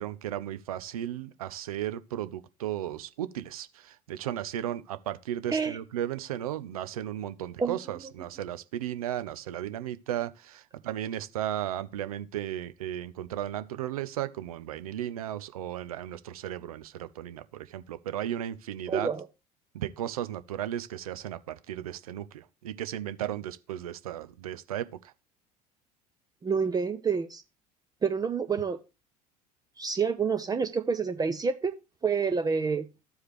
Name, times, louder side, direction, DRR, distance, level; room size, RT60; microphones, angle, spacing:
voice 1, 0.0-19.1 19.7-24.9, right 11 dB, 70° right, 0.5 m, -35 dB
voice 2, 5.5-5.8 7.6-7.8 18.9-19.3 26.4-27.4 28.0-28.8 29.8-31.7 32.0-32.9, right 5 dB, 20° right, 0.6 m, -28 dB
13.5 x 4.8 x 3.1 m
figure-of-eight pair, 60°, 19 cm